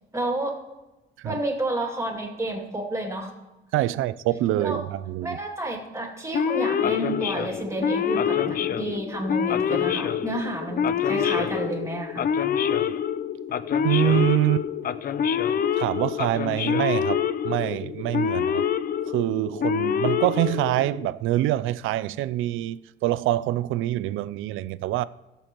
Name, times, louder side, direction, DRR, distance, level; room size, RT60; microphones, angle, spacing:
voice 1, 0.1-0.5 1.2-3.3 4.6-4.8 5.2-12.2, right 1 dB, 15° right, 2.4 m, -30 dB
voice 2, 3.7-5.4 13.8-14.7 15.8-17.2 17.4-18.6 19.1-25.0, right 14 dB, 90° right, 0.4 m, -25 dB
Male speech man speaking / Siren, 6.3-21.1, left 8 dB, 50° left, 0.5 m, -26 dB
20.0 x 6.9 x 3.0 m
cardioid pair, 90°, 20 cm